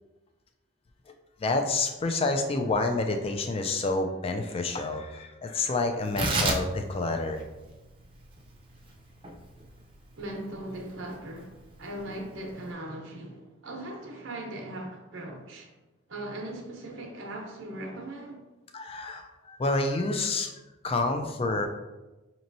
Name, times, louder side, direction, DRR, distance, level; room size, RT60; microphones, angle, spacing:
voice 1, 1.1-7.5 18.7-20.5 20.8-21.7, left 3 dB, 30° left, 0.3 m, -28 dB
Tearing, 6.0-12.7, right 2 dB, 25° right, 0.6 m, -34 dB
voice 2, 10.2-15.7 16.1-18.4, right 1 dB, 75° right, 0.8 m, -39 dB
5.2 x 3.0 x 2.6 m
head